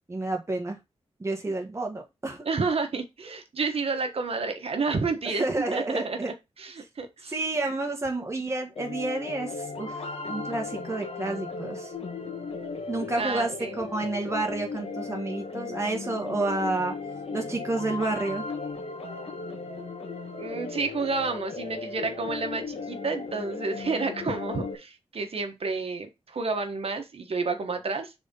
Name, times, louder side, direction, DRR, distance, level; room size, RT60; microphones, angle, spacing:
voice 1, 0.1-0.8 1.2-2.5 5.2-6.3 7.3-11.9 12.9-16.9 17.3-18.5, right 2 dB, 25° right, 1.6 m, -30 dB
voice 2, 2.4-5.5 5.7-6.2 6.6-7.3 13.2-13.8 20.4-28.1, right 4 dB, 60° right, 1.3 m, -30 dB
sound 1, 8.8-24.8, left 4 dB, 65° left, 1.5 m, -36 dB
4.9 x 4.0 x 5.4 m
cardioid pair, 60°, 11 cm